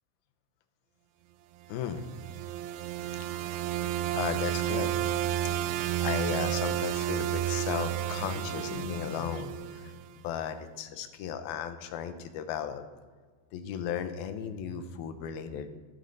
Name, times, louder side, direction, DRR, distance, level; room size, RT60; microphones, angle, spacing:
voice 1, 1.7-2.1 4.1-12.8 13.5-15.7, left 8 dB, 75° left, 9 dB, 2.7 m, -36 dB
sound 1, 1.9-10.1, right 12 dB, 80° right, 2.3 m, -31 dB
14.5 x 12.0 x 4.0 m, 1.5 s
omnidirectional pair, 4.5 m